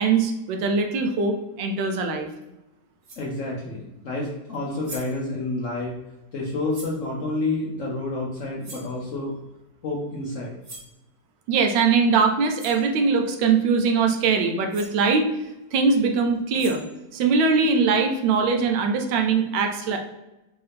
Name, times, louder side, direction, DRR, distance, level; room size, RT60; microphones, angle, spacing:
voice 1, 0.0-2.3 11.5-15.2 15.7-16.8 17.1-20.0, right 5 dB, 85° right, 4 dB, 1.3 m, -21 dB
sound 1, 2.4-2.5 3.0-3.3 4.5-4.6 4.8-5.2 6.7-7.0 8.6-9.0 10.6-11.0 12.2-12.3 12.6-12.9 14.4-14.5 14.7-15.0 16.3-17.0, right 2 dB, 45° right, 1.2 m, -42 dB
voice 2, 3.2-5.9 6.3-9.4 9.8-10.5, left 2 dB, 65° left, -2 dB, 0.8 m, -29 dB
4.6 x 2.7 x 3.4 m, 0.96 s
omnidirectional pair, 2.0 m